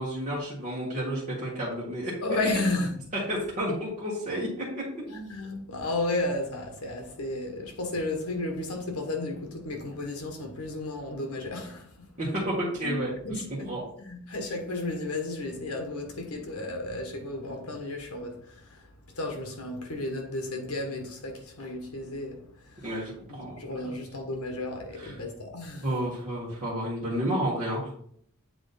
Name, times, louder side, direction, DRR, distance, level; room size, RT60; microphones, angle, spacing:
voice 1, 0.0-2.1 3.3-4.8 12.2-13.4 13.7-13.8 22.8-24.0 24.9-25.2 25.8-27.9, right 1 dB, 35° right, 1.7 m, -31 dB
voice 2, 2.2-2.9 5.1-12.1 12.8-13.0 13.2-13.7 14.0-18.8 19.2-22.9 23.3-25.9, left 2 dB, 80° left, 1.5 m, -33 dB
8.0 x 3.7 x 4.0 m
head